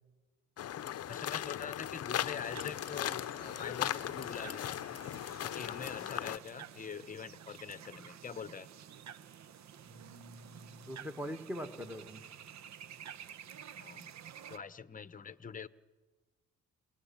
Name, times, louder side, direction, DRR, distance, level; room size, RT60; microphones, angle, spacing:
sound 1, 0.6-6.4, left 11 dB, 55° left, 0.7 m, -38 dB
voice 1, 1.1-4.8 5.4-8.7 13.8-14.1 14.5-15.7, left 6 dB, 25° left, 15 dB, 0.9 m, -44 dB
sound 2, 2.4-14.6, right 9 dB, 65° right, 1.0 m, -51 dB
voice 2, 9.9-12.2, equal, 5° right, 7 dB, 2.0 m, -43 dB
29.0 x 18.0 x 7.2 m, 1.3 s
cardioid pair, 90°, 30 cm